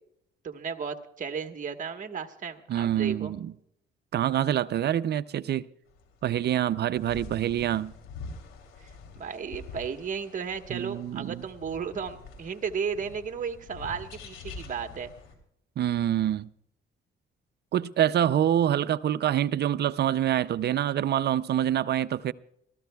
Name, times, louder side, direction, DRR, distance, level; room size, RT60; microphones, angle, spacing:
voice 1, 0.4-3.3 9.2-15.1, right 6 dB, 40° right, 1.3 m, -34 dB
voice 2, 2.7-3.5 4.1-5.7 6.2-7.9 10.7-11.4 15.8-16.5 17.7-22.3, right 11 dB, 55° right, 0.5 m, -26 dB
sound 1, 5.9-15.4, left 4 dB, 90° left, 2.9 m, -46 dB
28.5 x 13.5 x 2.3 m
cardioid pair, 90°, 20 cm